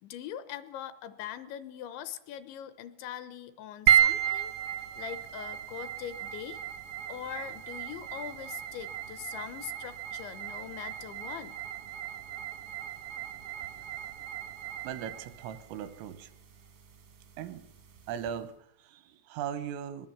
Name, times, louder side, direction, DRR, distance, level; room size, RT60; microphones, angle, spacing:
voice 1, 0.0-4.5 5.0-6.6 7.1-11.6, left 10 dB, 75° left, 12 dB, 3.1 m, -42 dB
sound 1, 3.9-18.3, right 10 dB, 65° right, 1.3 m, -33 dB
voice 2, 14.8-16.3 17.4-17.7 18.1-20.1, right 9 dB, 85° right, 12 dB, 3.9 m, -39 dB
23.0 x 20.5 x 7.4 m, 0.75 s
omnidirectional pair, 5.7 m